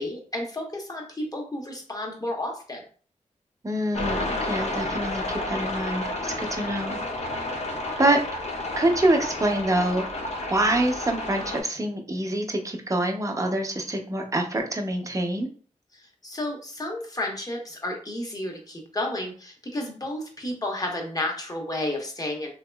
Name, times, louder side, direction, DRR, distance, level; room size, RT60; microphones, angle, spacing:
voice 1, 0.0-2.8 15.9-22.5, left 1 dB, 30° left, 1 dB, 1.0 m, -32 dB
voice 2, 3.6-7.0 8.0-8.2 8.8-10.0 10.5-15.5, right 1 dB, 25° right, 2 dB, 0.7 m, -25 dB
sound 1, 3.9-11.6, left 2 dB, 55° left, 0.6 m, -31 dB
2.9 x 2.8 x 2.2 m, 0.42 s
cardioid pair, 50°, 13 cm